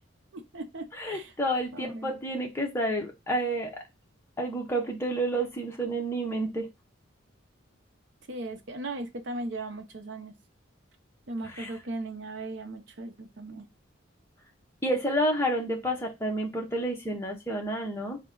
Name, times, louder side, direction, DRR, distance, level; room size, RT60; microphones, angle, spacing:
voice 1, 0.3-1.3 1.7-2.2 8.3-10.3 11.3-13.7, right 2 dB, 65° right, 7 dB, 0.7 m, -37 dB
voice 2, 1.0-3.7 4.4-6.7 11.6-11.7 14.8-18.2, right 1 dB, 15° left, 0 dB, 0.8 m, -29 dB
3.8 x 2.2 x 3.7 m, 0.23 s
head